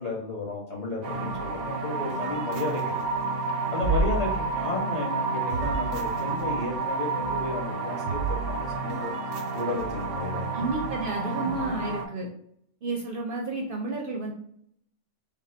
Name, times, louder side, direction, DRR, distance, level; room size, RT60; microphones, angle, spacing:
voice 1, 0.0-2.8 3.7-9.1 9.5-10.4, left 3 dB, 35° left, -5 dB, 1.2 m, -33 dB
sound 1, 1.0-12.0, right 4 dB, 85° right, 0.9 m, -29 dB
voice 2, 10.5-12.3 12.8-14.3, right 3 dB, 55° right, 0 dB, 0.7 m, -31 dB
3.5 x 2.3 x 4.0 m, 0.67 s
omnidirectional pair, 1.2 m